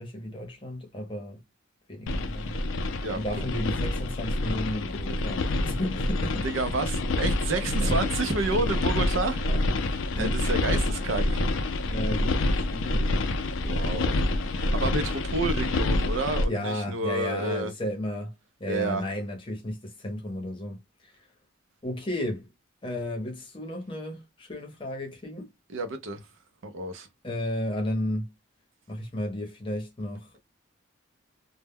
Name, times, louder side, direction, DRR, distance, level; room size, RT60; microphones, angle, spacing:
voice 1, 0.0-1.4 1.9-2.6 3.1-6.5 7.6-8.0 9.5-9.6 10.1-10.3 11.9-12.4 12.7-13.2 16.5-18.3 18.6-21.1 21.8-22.5 22.8-25.5 27.2-28.3 28.9-30.3, left 1 dB, 25° left, 0.7 m, -33 dB
sound 1, 2.1-16.5, left 2 dB, 75° left, 0.4 m, -27 dB
voice 2, 6.4-9.5 10.2-11.4 13.6-17.7 18.7-19.0 25.7-26.3 26.6-27.1, right 3 dB, 75° right, 0.5 m, -30 dB
2.1 x 2.1 x 3.4 m
head